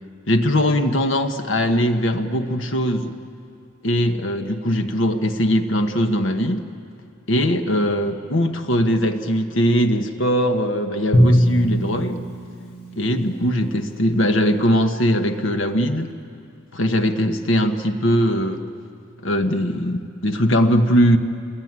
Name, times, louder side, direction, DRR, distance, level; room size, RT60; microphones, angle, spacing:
voice 1, 0.3-3.1 3.8-6.7 7.3-12.2 13.0-16.1 16.7-18.6 19.2-21.2, equal, 70° left, 7 dB, 1.4 m, -20 dB
Drum, 11.1-14.1, equal, 50° left, 2.7 m, -21 dB
28.0 x 21.5 x 9.7 m, 2.4 s
head